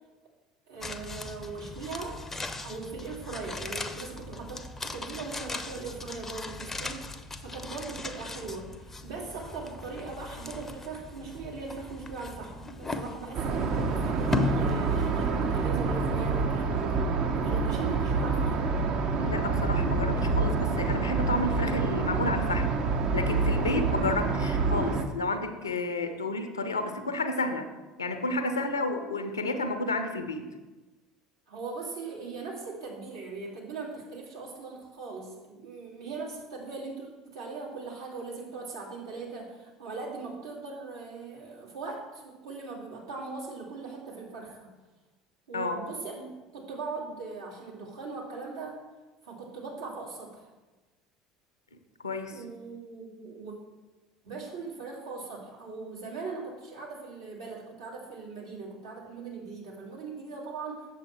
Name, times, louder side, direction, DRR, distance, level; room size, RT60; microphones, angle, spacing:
voice 1, 0.7-2.2 2.6-17.0 17.3-18.6 31.5-44.7 45.5-48.8 49.2-50.5 52.3-53.6 54.2-60.9, right 4 dB, 70° right, -5 dB, 2.4 m, -40 dB
sound 1, 0.8-16.0 16.3-16.4, left 2 dB, 15° left, 0.6 m, -38 dB
sound 2, 13.3-25.0, right 4 dB, 45° right, 0.9 m, -27 dB
voice 2, 19.2-22.7 23.1-27.7 28.0-30.5 45.5-45.8 52.0-52.4, left 2 dB, 80° left, 8 dB, 0.7 m, -31 dB
7.5 x 7.2 x 4.4 m, 1.2 s
figure-of-eight pair, 65°, 2 cm